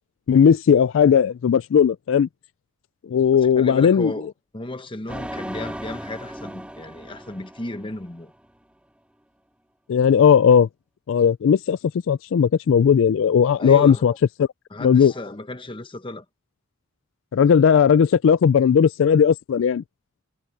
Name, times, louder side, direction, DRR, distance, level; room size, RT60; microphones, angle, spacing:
voice 1, 0.3-2.3 3.1-4.1 9.9-10.7 11.1-11.8 12.1-14.1 14.4-14.5 14.8-15.1 17.3-19.8, left 7 dB, 65° left, 0.3 m, -17 dB
voice 2, 3.4-8.3 13.6-14.0 14.7-16.2, left 1 dB, 25° left, 1.0 m, -34 dB
sound 1, 5.1-8.5, equal, 5° right, 2.0 m, -37 dB
head